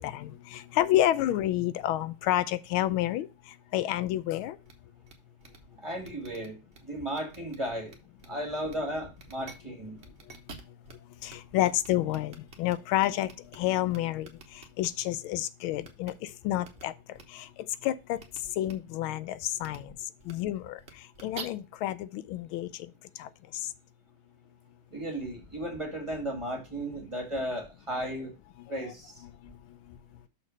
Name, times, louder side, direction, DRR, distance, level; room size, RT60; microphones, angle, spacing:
voice 1, 0.0-3.3 3.7-4.6 11.2-14.3 14.5-17.5 17.8-18.2 18.6-19.9 20.3-20.8 21.2-22.9 23.2-23.3, left 14 dB, 90° left, 1.4 m, -29 dB
sound 1, 4.6-4.7 5.1-5.2 5.4-5.6 6.0-6.8 7.1-7.6 7.9-8.3 8.7-8.8 9.1-9.5 10.0-10.9 11.3-11.4 11.6-13.6 13.9-14.9 15.8-16.1 16.6-16.8 17.1-17.2 18.2-18.4 18.6-18.7 19.6-19.8 20.2-20.3 20.8-21.4, right 5 dB, 40° right, 1.1 m, -47 dB
voice 2, 5.8-7.9 8.3-10.0 24.9-28.3 28.7-29.1, right 1 dB, 15° right, 1.9 m, -35 dB
6.4 x 4.3 x 6.1 m
omnidirectional pair, 2.2 m